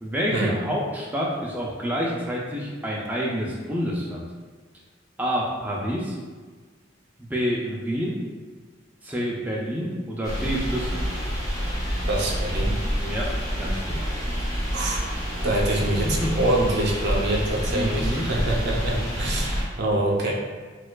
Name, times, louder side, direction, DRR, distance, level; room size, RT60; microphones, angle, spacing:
voice 1, 0.0-4.3 5.2-6.2 7.2-8.2 9.0-11.0 13.0-14.1 15.4-15.5 16.0-16.3 17.7-18.3, equal, 10° right, -4 dB, 0.3 m, -28 dB
sound 1, 10.2-19.6, equal, 20° left, 0.8 m, -28 dB
voice 2, 12.1-12.8 14.7-15.0 15.4-20.3, right 1 dB, 60° right, -1 dB, 0.5 m, -25 dB
4.2 x 2.3 x 2.2 m, 1.4 s
head